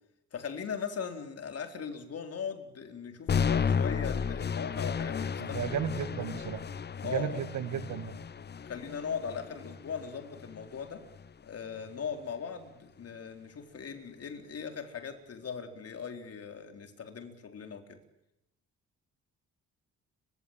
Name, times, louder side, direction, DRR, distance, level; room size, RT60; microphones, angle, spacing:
voice 1, 0.3-6.1 7.0-7.5 8.7-11.0 11.4-18.0, left 6 dB, 55° left, 6 dB, 4.1 m, -39 dB
sound 1, 3.3-11.3, left 6 dB, 35° left, 0.8 m, -33 dB
voice 2, 5.4-6.6 7.0-8.1, right 9 dB, 70° right, 12 dB, 1.8 m, -34 dB
30.0 x 16.0 x 9.0 m, 0.87 s
cardioid pair, 90°, 30 cm